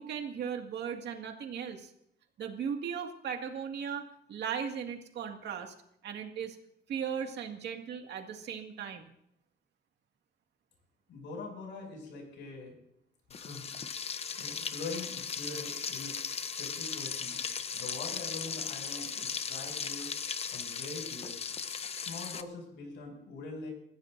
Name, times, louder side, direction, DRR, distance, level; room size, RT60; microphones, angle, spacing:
voice 1, 0.0-1.9 2.4-5.7 6.0-6.6 6.9-9.1, right 7 dB, 65° right, 3 dB, 2.1 m, -37 dB
voice 2, 11.1-12.8 13.3-14.0 14.4-16.1 16.6-17.4 17.7-20.1 20.5-21.4 22.1-23.7, left 3 dB, 85° left, 1 dB, 6.9 m, -43 dB
Frying (food), 13.3-22.4, left 6 dB, 35° left, 0.7 m, -37 dB
29.0 x 15.0 x 2.7 m, 0.77 s
cardioid pair, 145°, 19 cm